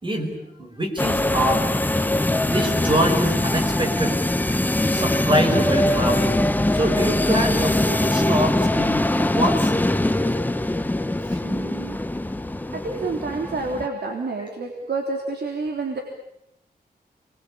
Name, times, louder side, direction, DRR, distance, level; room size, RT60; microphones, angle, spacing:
voice 1, 0.0-1.7 2.5-4.2 4.9-6.4 6.7-9.7, right 1 dB, 30° right, 3 dB, 5.4 m, -25 dB
sound 1, 1.0-13.9, left 1 dB, 10° left, 0.9 m, -22 dB
voice 2, 11.4-12.0 12.7-16.0, right 3 dB, 85° right, 2 dB, 3.4 m, -29 dB
28.5 x 21.5 x 8.7 m, 0.83 s
wide cardioid pair, 145°, 16 cm